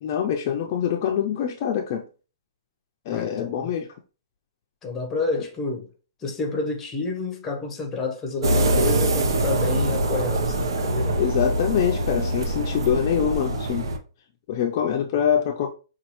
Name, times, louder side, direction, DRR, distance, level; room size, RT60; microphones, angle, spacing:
voice 1, 0.0-2.0 3.1-3.9 11.2-13.9 14.5-15.7, left 9 dB, 35° left, 0.4 m, -24 dB
voice 2, 3.1-3.7 4.8-5.9 6.2-11.2, left 3 dB, 10° left, 0.7 m, -29 dB
sound 1, 8.4-14.0, right 1 dB, 85° right, 0.8 m, -24 dB
5.2 x 2.4 x 2.9 m
hypercardioid pair, 160°, 2 cm